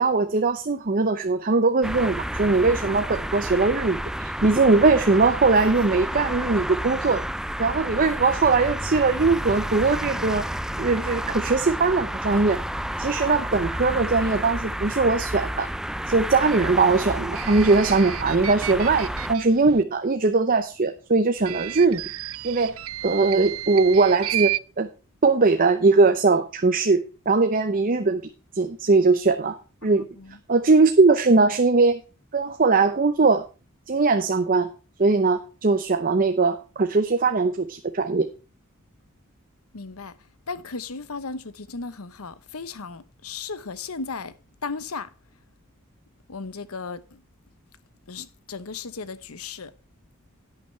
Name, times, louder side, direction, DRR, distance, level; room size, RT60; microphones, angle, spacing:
voice 1, 0.0-7.2 7.6-10.4 10.8-12.6 13.0-15.7 16.1-22.0 22.4-22.7 23.0-24.9 25.2-28.2 28.5-29.6 29.8-30.0 30.5-32.0 32.3-33.4 33.9-34.7 35.0-38.3, right 3 dB, 40° right, 0.7 m, -20 dB
sound 1, 1.8-19.3, right 1 dB, 5° right, 0.4 m, -30 dB
sound 2, 17.3-19.8 21.4-24.6, right 14 dB, 70° right, 0.5 m, -32 dB
voice 2, 29.8-30.4 39.7-40.1 40.5-44.3 44.6-45.1 46.3-47.2 48.1-49.7, left 4 dB, 90° left, 0.9 m, -35 dB
11.0 x 9.2 x 3.2 m
head